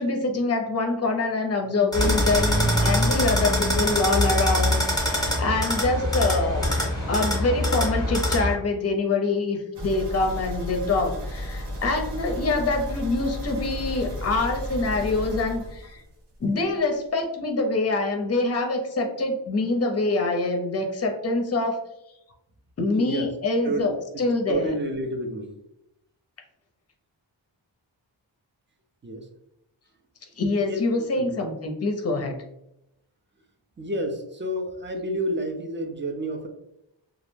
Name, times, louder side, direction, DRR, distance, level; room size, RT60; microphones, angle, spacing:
voice 1, 0.0-6.8 7.1-16.0 16.4-21.8 22.8-23.9 24.2-24.8 30.4-32.4, left 3 dB, 35° left, 4 dB, 0.5 m, -25 dB
sound 1, 1.9-8.5, left 1 dB, 10° left, 0.8 m, -23 dB
Percussion / Church bell, 4.2-8.1, right 6 dB, 80° right, 1.3 m, -44 dB
sound 2, 9.7-16.4 16.7-16.8 17.2-17.3, equal, 65° right, 0.8 m, -33 dB
voice 2, 22.8-23.3 23.6-25.6 29.0-29.3 30.7-31.5 33.8-36.5, right 1 dB, 25° right, 4 dB, 0.4 m, -30 dB
2.4 x 2.0 x 3.2 m, 0.83 s
wide cardioid pair, 65°, 45 cm